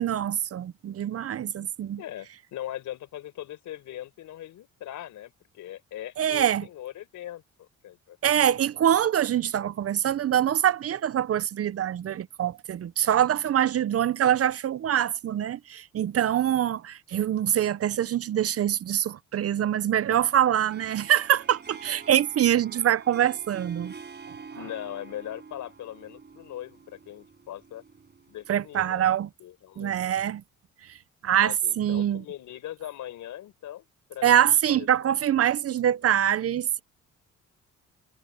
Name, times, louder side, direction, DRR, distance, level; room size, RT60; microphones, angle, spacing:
voice 1, 0.0-2.0 6.2-6.7 8.2-23.9 28.5-29.3 29.8-30.4 30.9-31.0 31.2-32.2 34.2-36.8, right 10 dB, 50° right, 0.7 m, -24 dB
voice 2, 2.0-8.3 24.5-27.8 28.3-29.1 29.4-29.9 31.3-34.3 34.7-34.9, left 12 dB, 80° left, 5.2 m, -40 dB
Harp, 20.6-28.8, right 5 dB, 35° right, 5.4 m, -47 dB
cardioid pair, 90°, 30 cm